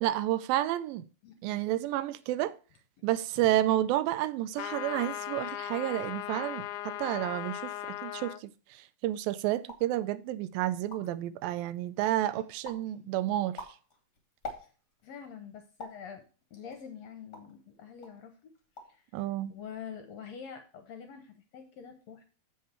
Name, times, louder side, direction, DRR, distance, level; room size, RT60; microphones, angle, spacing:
voice 1, 0.0-1.0 1.4-2.6 3.0-13.7 19.1-19.5, right 13 dB, 85° right, 2.4 m, -30 dB
voice 2, 1.2-1.7 12.3-12.4 13.0-13.1 14.6-14.7 15.0-18.5 18.9-19.0 19.5-22.2, left 7 dB, 65° left, 1.8 m, -46 dB
sound 1, 4.6-8.4, left 13 dB, 85° left, 1.8 m, -38 dB
sound 2, 9.6-10.0 10.5-10.6 10.7-11.3 11.8-12.2 12.6-12.9 13.3-15.0 15.8-16.1 16.7-17.6 18.0-18.2 18.5-19.0 19.3-19.8, left 2 dB, 30° left, 1.4 m, -45 dB
7.4 x 7.3 x 4.4 m
omnidirectional pair, 4.1 m